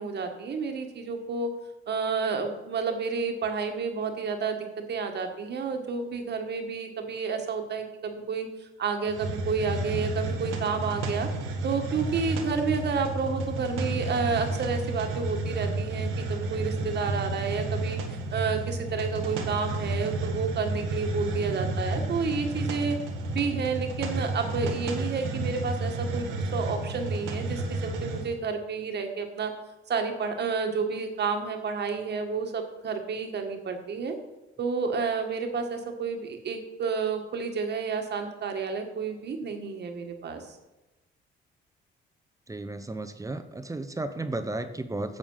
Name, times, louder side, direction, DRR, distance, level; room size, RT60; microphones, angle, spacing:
voice 1, 0.0-1.5 1.9-4.6 4.9-11.3 11.6-23.0 23.3-29.5 29.9-34.2 34.6-40.6, right 5 dB, 60° right, 5 dB, 1.8 m, -30 dB
Hiss, 9.1-28.3, right 2 dB, 90° right, 1.5 m, -31 dB
voice 2, 42.5-45.2, right 2 dB, 15° right, 10 dB, 0.9 m, -34 dB
10.5 x 7.1 x 5.7 m, 1.0 s
cardioid pair, 90°, 20 cm